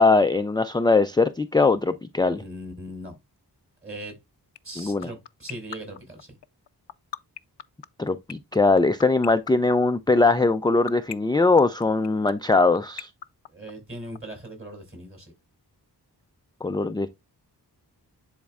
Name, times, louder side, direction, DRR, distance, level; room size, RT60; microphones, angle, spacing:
voice 1, 0.0-2.4 4.8-5.1 8.0-13.1 16.6-17.1, left 3 dB, 10° left, 0.4 m, -21 dB
voice 2, 2.4-3.1 3.8-4.1 4.6-6.4 13.5-15.3, right 1 dB, 30° right, 4.7 m, -39 dB
sound 1, 4.6-14.2, left 9 dB, 90° left, 0.5 m, -36 dB
10.5 x 4.3 x 2.4 m
wide cardioid pair, 95°, 41 cm